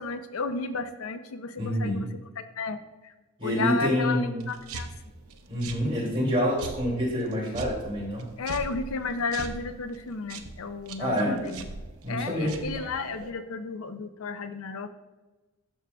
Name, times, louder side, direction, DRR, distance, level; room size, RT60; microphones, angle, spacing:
voice 1, 0.0-3.1 3.4-4.9 8.4-11.7 12.1-14.9, left 4 dB, 75° left, 10 dB, 0.5 m, -33 dB
voice 2, 1.6-2.1 3.4-4.4 5.5-8.2 11.0-11.3 12.0-12.5, equal, 25° right, -4 dB, 2.5 m, -27 dB
sound 1, 4.4-13.3, right 3 dB, 85° right, 0.7 m, -42 dB
11.5 x 6.2 x 2.3 m, 1.2 s
head